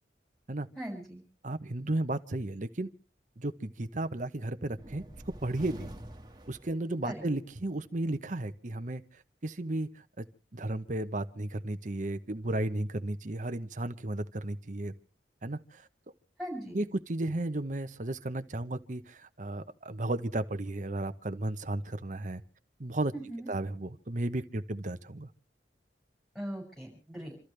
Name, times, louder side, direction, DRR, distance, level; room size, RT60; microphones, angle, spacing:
voice 1, 0.8-1.2 7.0-7.2 16.4-16.8 23.1-23.5 26.3-27.4, right 1 dB, ahead, 6.4 m, -39 dB
voice 2, 1.4-2.9 3.4-5.0 5.4-5.9 6.5-10.3 10.5-14.9 15.4-15.9 16.7-22.4 22.8-23.1 23.5-25.3, right 2 dB, 45° right, 0.9 m, -34 dB
sound 1, 4.7-7.4, right 1 dB, 25° right, 1.8 m, -47 dB
28.0 x 13.5 x 3.3 m
head